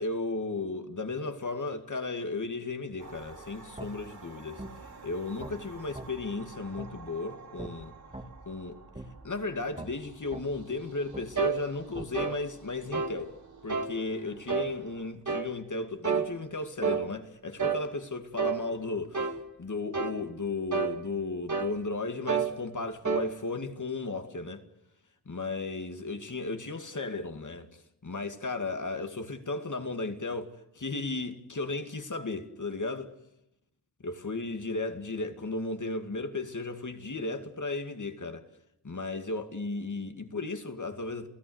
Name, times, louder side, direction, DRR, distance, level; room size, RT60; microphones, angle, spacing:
voice 1, 0.0-4.6 5.0-7.9 8.5-8.8 9.2-13.3 13.6-24.6 25.3-33.1 34.0-38.5 38.8-41.3, left 3 dB, 50° left, 2.3 m, -35 dB
sound 1, 3.0-15.1, right 4 dB, 70° right, 5.1 m, -51 dB
sound 2, 3.8-3.9 4.6-4.7 5.4-5.6 6.0-6.1 6.8-6.9 7.6-7.7 8.1-8.3 9.0-9.1 9.8-9.9 10.3-10.5 11.1-11.3 12.0-12.1, right 1 dB, 15° right, 2.5 m, -41 dB
sound 3, 11.4-11.6 12.1-12.4 12.9-13.2 13.7-13.9 14.5-14.7 15.3-15.5 16.0-16.3 16.8-17.0 17.6-17.8 18.4-18.6 19.1-19.4 19.9-20.2 20.7-21.0 21.5-21.8 22.3-22.5 23.0-23.3, right 5 dB, 45° right, 2.3 m, -29 dB
28.0 x 16.5 x 8.0 m
wide cardioid pair, 60°, 39 cm